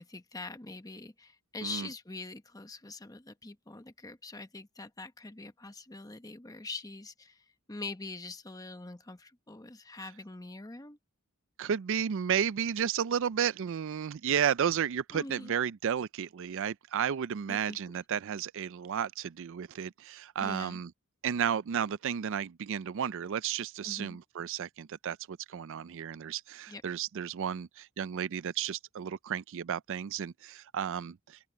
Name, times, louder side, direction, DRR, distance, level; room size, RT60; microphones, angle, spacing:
voice 1, 0.0-11.0 15.1-15.5 17.5-17.8 20.4-20.8 23.8-24.2 26.7-26.8, left 3 dB, 15° left, 1.0 m, -44 dB
voice 2, 11.6-20.9 21.2-31.4, right 8 dB, 60° right, 0.4 m, -33 dB
open air
head